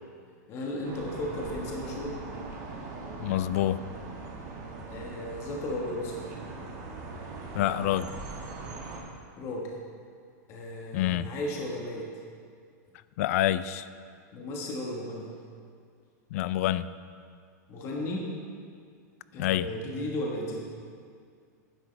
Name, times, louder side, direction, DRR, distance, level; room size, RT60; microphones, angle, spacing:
voice 1, 0.5-2.2 4.9-6.1 9.4-9.7 10.5-12.1 14.3-15.3 17.7-18.3 19.3-20.6, left 1 dB, 30° left, -2 dB, 1.5 m, -34 dB
sound 1, 0.8-9.0, right 3 dB, 40° right, 1.8 m, -41 dB
voice 2, 3.2-3.8 7.5-8.1 10.9-11.3 13.2-13.9 16.3-16.9 19.4-19.7, left 13 dB, 55° left, 15 dB, 0.4 m, -27 dB
11.5 x 10.5 x 3.4 m, 2.2 s
supercardioid pair, 155°, 9 cm